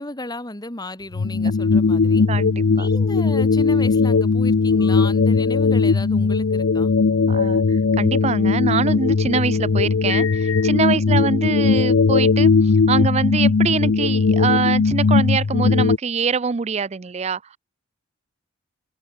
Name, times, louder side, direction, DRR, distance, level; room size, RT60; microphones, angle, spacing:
voice 1, 0.0-2.3 2.7-6.9 10.9-11.2, left 1 dB, 20° left, 2.6 m, -34 dB
sound 1, 1.1-16.0, left 4 dB, 65° left, 0.6 m, -18 dB
voice 2, 2.3-2.9 7.3-17.6, right 5 dB, 30° right, 0.4 m, -24 dB
open air
head